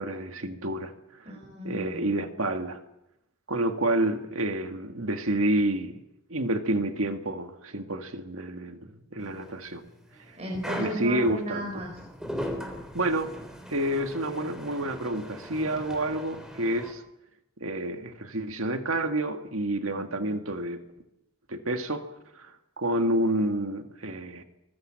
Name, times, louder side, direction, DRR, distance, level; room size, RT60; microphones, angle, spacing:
voice 1, 0.0-1.3 1.6-2.8 3.5-6.0 6.3-9.9 10.3-10.4 10.8-11.6 12.9-13.3 13.7-17.0 17.6-20.8 21.5-22.0 22.3-24.4, right 1 dB, 80° right, 6 dB, 1.9 m, -29 dB
voice 2, 1.3-2.2 10.4-12.0 19.9-20.4, equal, 30° right, -1 dB, 5.6 m, -35 dB
sound 1, 9.2-16.9, equal, 5° right, 3.4 m, -39 dB
24.0 x 21.0 x 7.7 m, 0.87 s
head